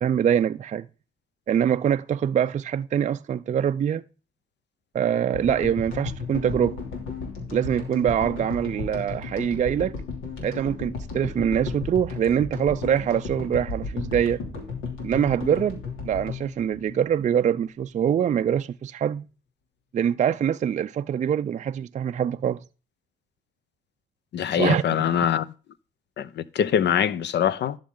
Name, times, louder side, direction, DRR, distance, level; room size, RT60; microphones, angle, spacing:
voice 1, 0.0-0.9 1.5-4.0 4.9-6.8 7.5-10.0 10.4-14.4 15.0-19.3 19.9-22.6 24.5-25.3, right 9 dB, 40° right, 0.4 m, -24 dB
sound 1, 5.3-17.7, left 4 dB, 90° left, 2.8 m, -34 dB
voice 2, 24.3-25.5 26.2-27.8, left 9 dB, 60° left, 0.7 m, -23 dB
11.5 x 6.5 x 3.7 m
cardioid pair, 90°, 20 cm